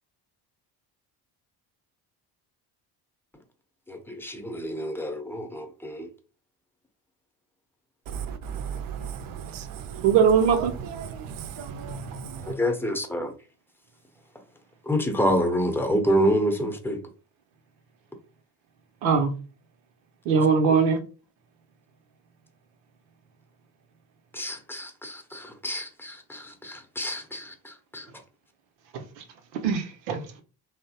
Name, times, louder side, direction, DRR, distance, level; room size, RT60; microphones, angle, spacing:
voice 1, 3.9-6.1 12.6-13.3 14.9-17.0 24.3-27.4 27.9-28.0, equal, 5° left, 0.7 m, -27 dB
voice 2, 8.1-10.1 10.8-12.6, right 7 dB, 45° right, 0.6 m, -36 dB
voice 3, 10.0-10.7 19.0-19.3 20.3-21.0 28.9-29.0 29.6-30.4, right 6 dB, 85° right, 0.7 m, -21 dB
2.9 x 2.0 x 2.8 m
hypercardioid pair, 55°, 49 cm